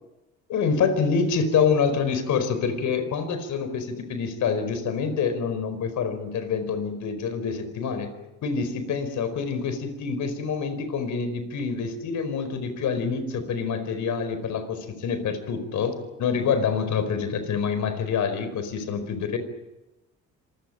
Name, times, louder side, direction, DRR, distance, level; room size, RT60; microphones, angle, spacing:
voice 1, 0.5-8.1 8.4-19.4, left 6 dB, 75° left, 10 dB, 4.9 m, -26 dB
26.5 x 18.0 x 8.9 m, 0.99 s
cardioid pair, 90°, 30 cm